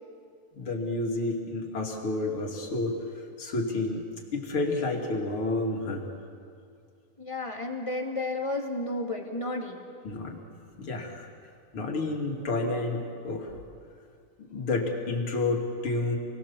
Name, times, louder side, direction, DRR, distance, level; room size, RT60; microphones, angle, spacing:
voice 1, 0.5-4.1 4.3-6.1 10.0-10.4 10.8-11.3 11.7-13.6 14.4-16.2, left 2 dB, 75° left, 0 dB, 3.5 m, -30 dB
voice 2, 7.2-9.8, left 2 dB, 15° left, 0 dB, 2.4 m, -32 dB
29.0 x 20.0 x 7.2 m, 2.4 s
omnidirectional pair, 2.4 m